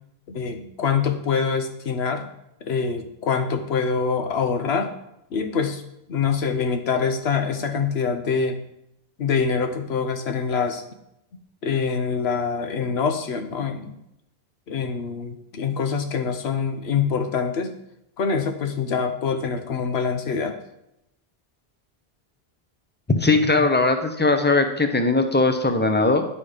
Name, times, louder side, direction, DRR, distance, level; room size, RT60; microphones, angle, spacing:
voice 1, 0.3-2.3 2.6-4.9 5.3-5.8 6.1-8.6 9.2-10.8 11.6-14.0 14.7-17.8 18.2-20.6, left 5 dB, 85° left, 7 dB, 1.1 m, -25 dB
voice 2, 23.2-26.3, left 3 dB, 15° left, 7 dB, 0.5 m, -19 dB
10.0 x 4.3 x 5.0 m, 0.83 s
omnidirectional pair, 1.0 m